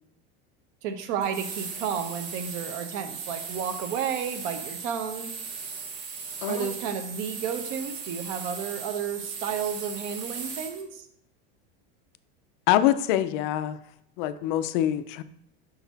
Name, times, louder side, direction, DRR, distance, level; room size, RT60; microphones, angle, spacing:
voice 1, 0.8-5.3 6.5-11.1, right 7 dB, 55° right, 8 dB, 0.7 m, -32 dB
sound 1, 1.2-10.8, right 5 dB, 80° right, 1.2 m, -38 dB
voice 2, 6.4-6.7 12.7-13.8 14.2-15.2, left 12 dB, 55° left, 12 dB, 0.4 m, -25 dB
5.9 x 4.0 x 4.0 m, 0.75 s
supercardioid pair, 165°, 30 cm